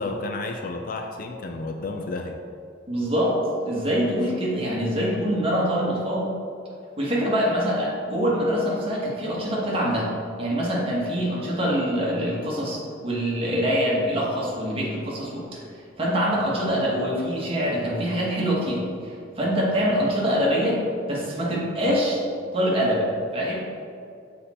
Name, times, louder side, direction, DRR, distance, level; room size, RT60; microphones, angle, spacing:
voice 1, 0.0-2.4 4.3-4.4 16.6-16.7 21.8-22.0, left 3 dB, 45° left, 5 dB, 0.4 m, -32 dB
voice 2, 2.9-3.4 3.6-6.3 7.0-10.1 10.4-15.6 16.0-20.8 21.1-22.2 22.5-23.1 23.3-23.6, equal, 30° right, -5 dB, 1.3 m, -24 dB
6.8 x 4.3 x 4.2 m, 2.4 s
head